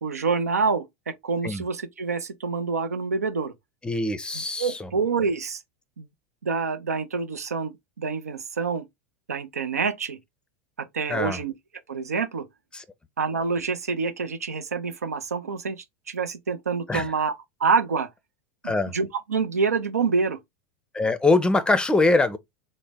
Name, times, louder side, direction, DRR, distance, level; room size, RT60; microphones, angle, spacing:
voice 1, 0.0-3.5 4.3-5.6 6.0-6.1 6.4-8.9 9.3-10.2 10.8-11.5 11.9-12.5 13.2-17.3 17.6-18.1 18.6-20.4, right 5 dB, 85° right, 0.4 m, -27 dB
voice 2, 3.8-4.9 11.1-11.4 12.7-12.8 16.9-17.1 18.6-18.9 20.9-22.4, left 2 dB, 10° left, 0.5 m, -23 dB
3.8 x 2.0 x 3.4 m
hypercardioid pair, 90°, 8 cm